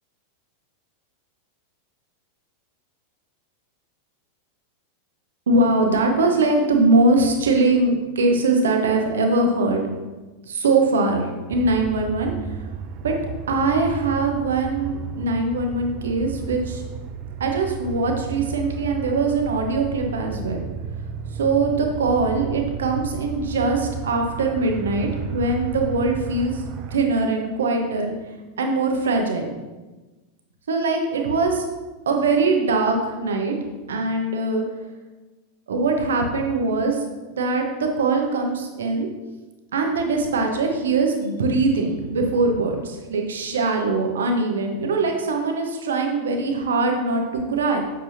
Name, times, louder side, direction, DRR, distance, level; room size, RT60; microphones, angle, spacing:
voice 1, 5.5-9.8 10.4-12.3 13.0-13.1 13.5-16.8 17.4-20.6 21.3-26.6 26.9-28.1 28.6-29.5 30.7-31.7 32.0-33.5 33.9-34.6 35.7-37.0 37.3-39.1 39.7-47.8, right 3 dB, 65° right, 3 dB, 1.2 m, -22 dB
sound 1, 11.5-27.0, right 6 dB, 40° right, 0.5 m, -33 dB
7.6 x 7.5 x 2.8 m, 1.2 s
figure-of-eight pair, 90°, 0 cm